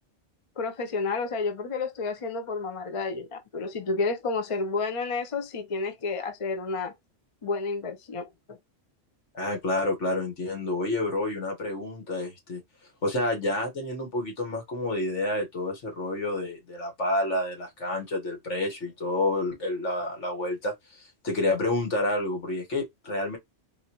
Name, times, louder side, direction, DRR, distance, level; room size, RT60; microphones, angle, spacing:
voice 1, 0.6-6.9 7.4-8.6, left 4 dB, 40° left, 0.5 m, -30 dB
voice 2, 9.3-12.6 13.0-23.4, left 2 dB, 75° left, 1.8 m, -29 dB
4.1 x 2.5 x 2.9 m
omnidirectional pair, 1.2 m